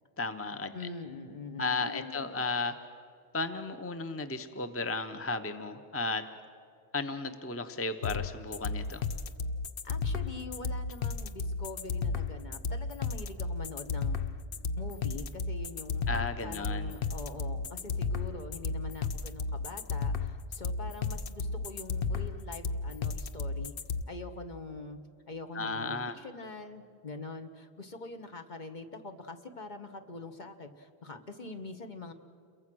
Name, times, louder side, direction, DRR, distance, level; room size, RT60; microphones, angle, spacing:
voice 1, 0.2-0.7 1.6-2.7 3.3-6.3 6.9-9.0 16.1-16.9 25.5-26.1, left 3 dB, 15° left, 9 dB, 0.8 m, -34 dB
voice 2, 0.7-2.4 9.8-14.2 14.8-23.7 24.1-25.0 25.3-32.1, left 3 dB, 45° left, 6 dB, 1.4 m, -44 dB
sound 1, 8.0-24.0, left 4 dB, 60° left, 0.9 m, -33 dB
29.0 x 22.5 x 6.2 m, 2.4 s
omnidirectional pair, 1.1 m